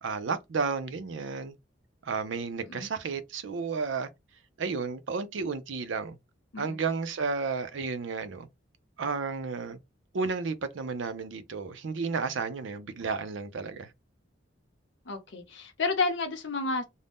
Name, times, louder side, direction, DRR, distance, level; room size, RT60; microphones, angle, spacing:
voice 1, 0.0-1.6 2.0-4.1 4.6-6.2 6.6-8.5 9.0-9.8 10.1-13.9, right 4 dB, 75° right, 0.5 m, -32 dB
voice 2, 15.1-16.8, left 3 dB, 65° left, 0.6 m, -31 dB
2.6 x 2.1 x 3.4 m
head